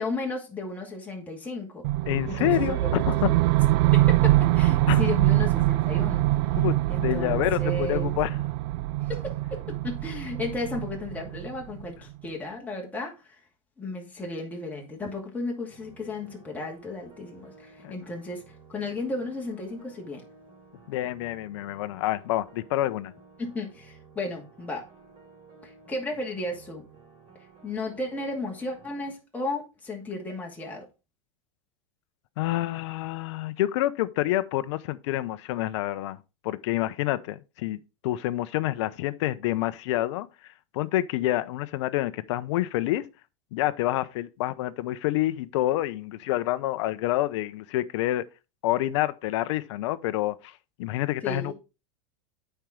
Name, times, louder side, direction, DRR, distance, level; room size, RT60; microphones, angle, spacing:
voice 1, 0.0-1.8 2.3-2.9 3.9-6.5 6.9-8.2 9.1-13.4 13.8-20.2 23.4-24.8 25.6-26.8 27.6-30.9 51.2-51.5, left 2 dB, 10° left, 2.4 m, -34 dB
sound 1, 1.8-11.9, right 17 dB, 55° right, 0.4 m, -24 dB
voice 2, 2.1-3.3 4.9-5.0 6.6-8.3 17.8-17.9 20.9-23.1 32.4-36.2 36.4-37.8 38.0-40.3 40.7-43.1 43.5-48.2 48.6-50.5 50.8-51.5, left 15 dB, 65° left, 0.7 m, -27 dB
sound 2, 15.7-29.1, right 4 dB, 30° right, 3.7 m, -54 dB
9.0 x 4.6 x 4.9 m
supercardioid pair, 125°, 16 cm